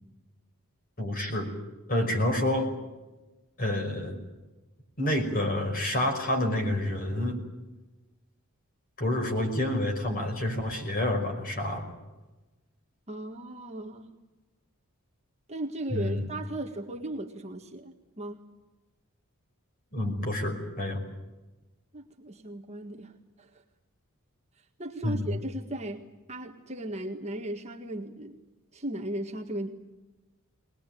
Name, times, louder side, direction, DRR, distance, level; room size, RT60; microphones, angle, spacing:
voice 1, 1.0-1.5 1.9-2.7 3.6-4.2 5.0-7.4 9.0-11.9 15.9-16.3 19.9-21.0 25.0-25.3, left 1 dB, 40° left, 3 dB, 5.5 m, -28 dB
voice 2, 13.1-14.1 15.5-18.4 21.9-23.5 24.8-28.4 28.7-29.7, right 1 dB, 30° right, 1 dB, 1.7 m, -37 dB
22.5 x 20.5 x 9.2 m, 1.1 s
head